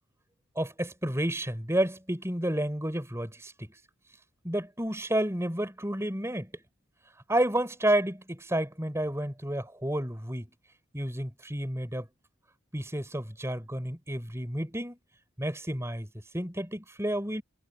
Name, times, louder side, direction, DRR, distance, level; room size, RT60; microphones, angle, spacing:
voice 1, 0.6-3.7 4.4-6.5 7.3-10.5 10.9-12.1 12.7-15.0 15.4-16.1 16.3-17.4, right 1 dB, 15° right, 4.2 m, -30 dB
head